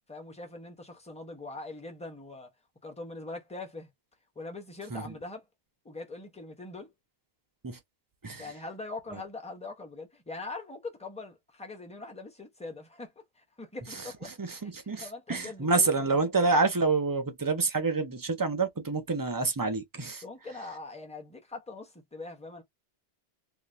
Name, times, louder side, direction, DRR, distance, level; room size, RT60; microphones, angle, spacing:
voice 1, 0.1-2.5 2.8-3.9 4.4-5.4 5.8-6.9 8.4-13.1 13.4-14.3 15.0-16.1 20.2-22.6, left 3 dB, 5° left, 0.7 m, -42 dB
voice 2, 8.2-8.6 9.1-9.2 13.9-20.2, right 3 dB, 30° right, 0.4 m, -28 dB
2.6 x 2.4 x 3.3 m
omnidirectional pair, 1.1 m